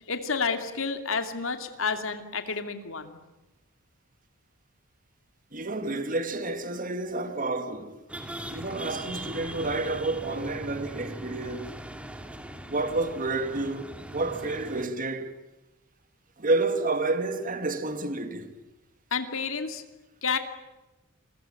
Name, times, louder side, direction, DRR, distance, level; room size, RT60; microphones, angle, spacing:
voice 1, 0.1-3.2 19.1-19.8 20.2-20.4, left 5 dB, 75° left, 2.7 m, -30 dB
voice 2, 5.5-8.0 8.5-11.7 12.7-15.4 16.4-18.5, right 2 dB, 40° right, 2.4 m, -30 dB
sound 1, 8.1-14.8, right 1 dB, 5° right, 2.5 m, -40 dB
29.0 x 21.5 x 9.0 m
head